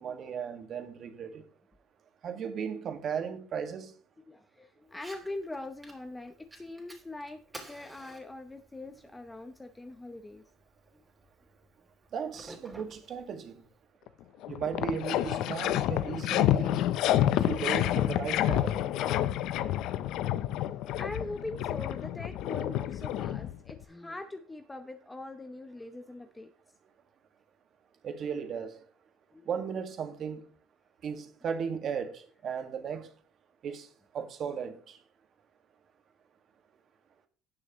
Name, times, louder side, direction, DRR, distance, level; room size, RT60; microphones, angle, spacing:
voice 1, 0.0-1.4 2.2-3.9 12.1-13.6 14.5-16.8 17.3-18.8 28.0-28.7 29.5-30.4 31.0-33.1 33.6-33.9 34.1-35.0, right 7 dB, 45° right, 2.0 m, -36 dB
voice 2, 4.3-10.4 21.0-26.5 29.3-29.5 34.4-34.5, left 2 dB, 10° left, 0.9 m, -42 dB
Fire, 4.9-13.9, right 2 dB, 10° right, 2.9 m, -53 dB
sound 1, 14.1-14.2 14.4-23.8, left 12 dB, 70° left, 0.7 m, -29 dB
17.5 x 6.3 x 3.1 m
cardioid pair, 120°, 0 cm